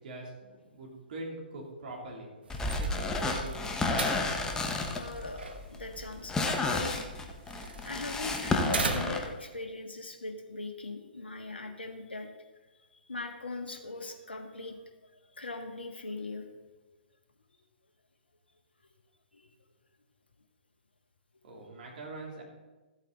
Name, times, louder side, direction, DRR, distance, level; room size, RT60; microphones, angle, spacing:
voice 1, 0.0-2.3 2.8-4.2 21.4-22.4, right 2 dB, 55° right, -1 dB, 3.2 m, -43 dB
sound 1, 2.4-9.4, right 4 dB, 70° right, 1.2 m, -40 dB
sound 2, 2.5-9.3, left 3 dB, 10° left, 1.1 m, -31 dB
voice 2, 5.0-7.0 7.8-12.5 13.0-14.8 15.3-16.5 19.3-19.5, left 3 dB, 85° left, 4 dB, 1.7 m, -40 dB
14.0 x 8.3 x 4.0 m, 1.2 s
figure-of-eight pair, 125°, 6 cm